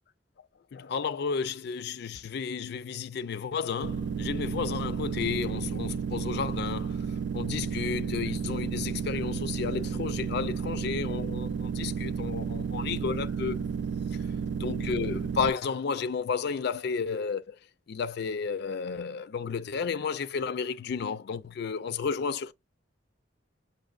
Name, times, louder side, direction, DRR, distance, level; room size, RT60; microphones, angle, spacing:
voice 1, 0.7-7.0 7.3-13.7 14.6-17.6 17.9-22.5, left 6 dB, 60° left, 0.4 m, -32 dB
sound 1, 3.8-15.5, right 6 dB, 65° right, 0.3 m, -32 dB
6.3 x 2.7 x 2.4 m
head